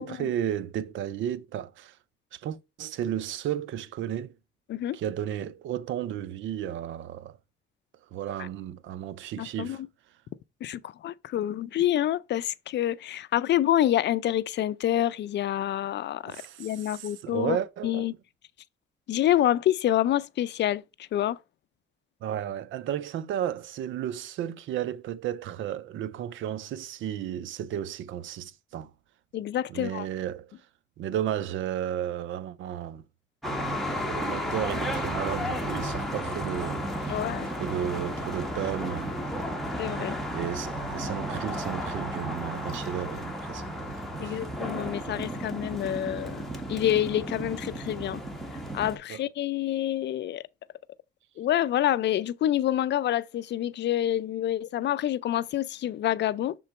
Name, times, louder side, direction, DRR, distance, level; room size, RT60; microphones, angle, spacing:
voice 1, 0.0-2.0 2.3-4.4 4.9-7.4 8.1-9.8 16.3-18.1 22.2-28.9 29.7-30.5 31.0-33.0 34.0-37.3 37.6-39.1 40.3-43.7 44.2-44.5 49.1-49.2, right 10 dB, 75° right, 0.6 m, -33 dB
voice 2, 9.4-9.8 10.6-17.6 17.8-18.1 19.1-20.8 21.1-21.4 29.3-30.1 37.1-37.5 39.8-40.2 44.2-48.2 48.7-50.4 51.4-56.6, left 12 dB, 60° left, 0.5 m, -27 dB
sound 1, 33.4-49.0, equal, ahead, 1.7 m, -33 dB
6.8 x 3.8 x 4.3 m
cardioid pair, 90°, 20 cm